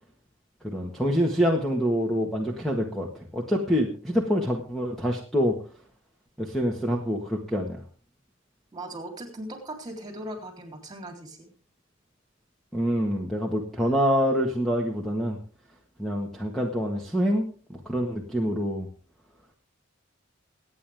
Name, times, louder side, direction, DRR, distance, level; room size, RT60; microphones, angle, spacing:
voice 1, 0.6-3.1 3.3-5.6 6.4-7.8 12.7-15.4 16.0-18.9, equal, ahead, 0 dB, 1.6 m, -26 dB
voice 2, 8.7-11.5 13.8-13.9, right 1 dB, 20° right, 4 dB, 3.6 m, -39 dB
24.0 x 9.3 x 3.6 m, 0.41 s
head